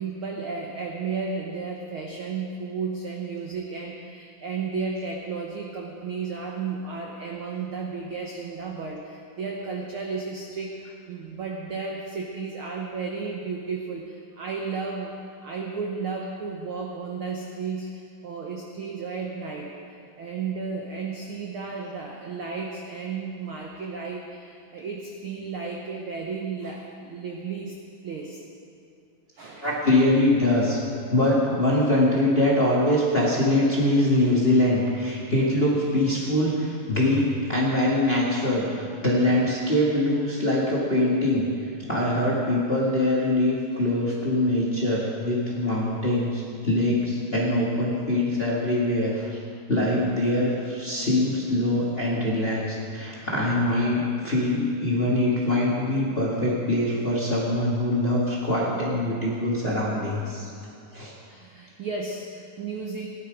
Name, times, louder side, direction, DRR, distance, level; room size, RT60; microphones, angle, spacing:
voice 1, 0.0-27.7 28.0-28.4 29.3-29.8 39.7-39.8 41.8-41.9 44.1-44.2 61.1-63.1, right 4 dB, 80° right, 0 dB, 1.2 m, -33 dB
voice 2, 29.6-30.8 31.1-49.4 49.7-60.5 60.9-61.1, left 1 dB, 25° left, -5 dB, 1.2 m, -23 dB
16.5 x 11.0 x 5.0 m, 2.4 s
omnidirectional pair, 3.8 m